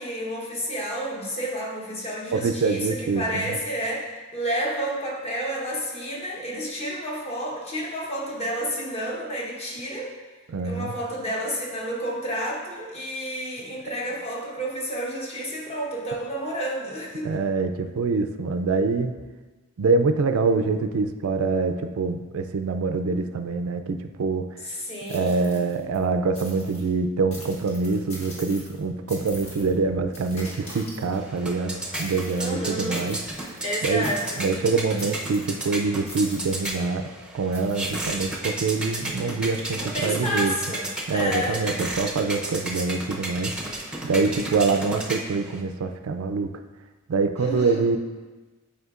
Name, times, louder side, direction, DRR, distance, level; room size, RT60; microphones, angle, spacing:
voice 1, 0.0-10.1 10.6-17.3 24.6-25.5 32.4-33.1 33.6-34.6 39.7-41.9 47.4-47.8, equal, 30° left, -3 dB, 1.0 m, -30 dB
voice 2, 2.3-3.6 10.5-10.9 17.2-19.1 19.8-24.5 25.1-33.2 33.8-34.1 34.4-40.5 41.1-43.5 44.0-46.5 47.1-48.0, right 4 dB, 75° right, 8 dB, 0.4 m, -25 dB
sound 1, 25.0-26.0 26.3-26.9 27.3-28.8 29.1-29.7 30.1-31.4 31.9-32.5 32.9-33.6 34.0-34.6 35.0-35.6 36.1-36.8 37.5-38.1, left 1 dB, 85° left, 1.6 m, -42 dB
sound 2, 31.1-45.6, right 1 dB, 5° right, 0.6 m, -33 dB
7.9 x 4.9 x 2.4 m, 1.3 s
head